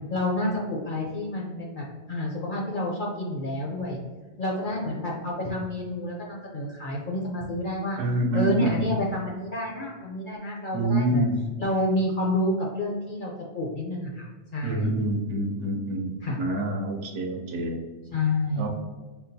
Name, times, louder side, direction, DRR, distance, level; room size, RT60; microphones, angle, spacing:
voice 1, 0.1-4.0 4.4-8.0 8.3-11.3 11.6-14.9 16.2-16.4 18.1-18.7, left 1 dB, 60° left, -2 dB, 0.5 m, -29 dB
voice 2, 8.0-8.8 10.7-11.4 14.6-16.1 16.4-17.8 18.6-18.7, right 1 dB, 70° right, 2 dB, 0.9 m, -26 dB
5.4 x 2.2 x 2.6 m, 1.3 s
omnidirectional pair, 1.3 m